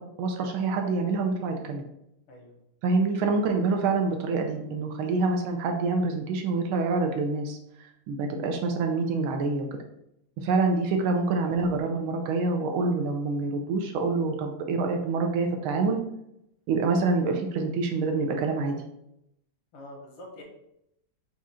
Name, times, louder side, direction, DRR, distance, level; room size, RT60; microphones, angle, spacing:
voice 1, 0.2-1.8 2.8-7.6 8.1-9.7 10.4-16.0 16.7-18.8, right 3 dB, 75° right, 4 dB, 1.4 m, -26 dB
voice 2, 19.7-20.4, left 1 dB, 75° left, 0 dB, 1.9 m, -46 dB
5.0 x 2.4 x 4.2 m, 0.80 s
omnidirectional pair, 2.4 m